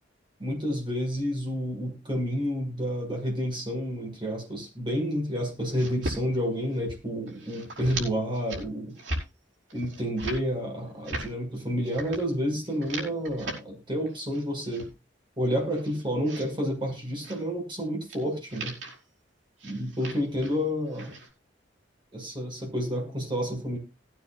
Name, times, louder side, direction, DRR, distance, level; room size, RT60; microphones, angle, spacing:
voice 1, 0.4-9.0 9.7-14.9 15.4-18.8 19.6-21.2 22.1-23.8, equal, 25° right, 1 dB, 6.2 m, -30 dB
sound 1, 5.6-6.2 6.5-7.0 7.3-8.1 8.3-8.6 8.9-9.2 9.7-10.4 10.9-11.3 11.8-12.2 12.6-13.6 14.1-14.9 15.4-16.5 17.2-17.4 18.1-18.2 18.5-19.0 19.6-20.6 20.9-21.3, right 1 dB, 75° right, 5.3 m, -38 dB
19.5 x 9.6 x 2.5 m, 0.27 s
head